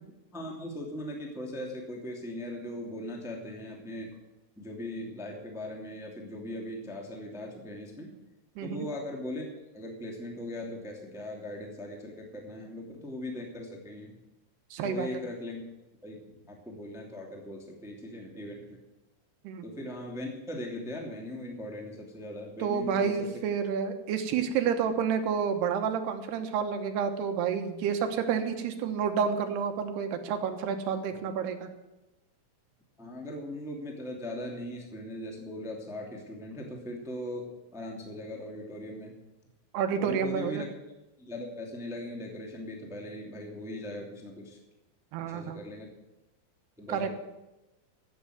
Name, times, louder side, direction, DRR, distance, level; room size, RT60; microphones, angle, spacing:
voice 1, 0.3-4.2 4.5-8.1 8.6-9.5 9.7-14.2 14.8-15.6 16.0-18.8 19.6-23.3 31.0-31.1 33.0-39.2 40.0-40.7 41.2-44.6 45.2-45.9 46.8-47.1, left 1 dB, ahead, 0 dB, 1.6 m, -39 dB
voice 2, 8.6-8.9 14.7-15.1 19.4-19.6 22.6-31.7 39.7-40.7 45.1-45.6 46.9-47.1, right 7 dB, 80° right, 7 dB, 3.1 m, -29 dB
14.5 x 8.8 x 7.9 m, 1.0 s
omnidirectional pair, 4.7 m